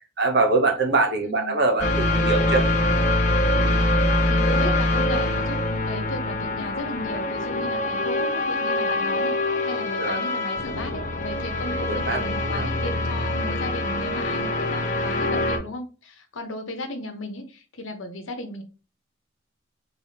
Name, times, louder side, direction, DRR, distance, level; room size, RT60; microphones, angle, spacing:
voice 1, 0.2-2.6 10.0-10.2 11.9-12.7, right 3 dB, 55° right, 0.8 m, -23 dB
voice 2, 1.2-1.6 4.2-9.3 9.6-18.6, left 1 dB, 85° left, 0.9 m, -35 dB
sound 1, 1.8-15.6, left 1 dB, 40° left, 0.7 m, -24 dB
4.3 x 3.5 x 2.8 m
head